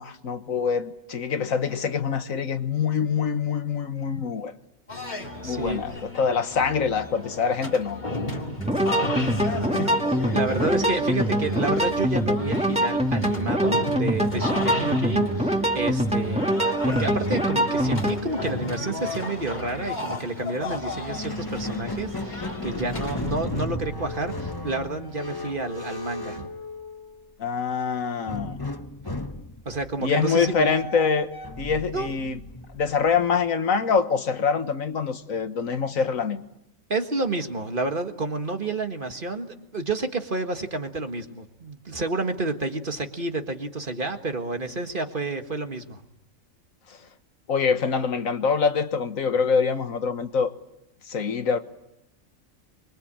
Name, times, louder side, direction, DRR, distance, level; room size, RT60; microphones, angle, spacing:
voice 1, 0.0-4.5 5.4-8.3 9.4-10.3 27.4-28.6 30.0-32.4 32.7-36.4 47.5-50.5 51.1-51.6, left 5 dB, 80° left, 1.7 m, -25 dB
sound 1, 4.9-23.4, left 2 dB, 35° left, 2.4 m, -34 dB
voice 2, 5.4-5.8 9.2-9.3 10.3-16.5 16.8-26.5 29.7-30.7 31.9-32.1 36.9-46.0, right 3 dB, 40° right, 1.8 m, -30 dB
sound 2, 8.6-18.2, right 1 dB, 5° right, 2.2 m, -24 dB
Squeak, 21.0-27.3 28.3-33.4, left 2 dB, 15° left, 1.2 m, -35 dB
25.0 x 22.5 x 8.8 m
omnidirectional pair, 1.4 m